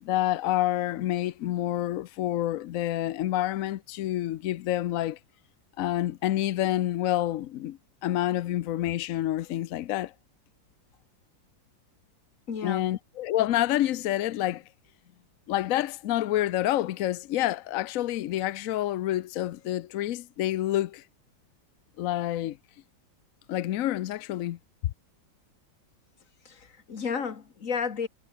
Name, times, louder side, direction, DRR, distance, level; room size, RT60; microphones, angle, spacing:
voice 1, 0.0-5.2 5.8-10.1 12.6-14.6 15.5-21.0 22.0-22.6 23.5-24.9, left 13 dB, 75° left, 0.7 m, -28 dB
voice 2, 12.5-12.9 26.5-28.1, left 6 dB, 45° left, 2.0 m, -32 dB
omnidirectional pair, 2.1 m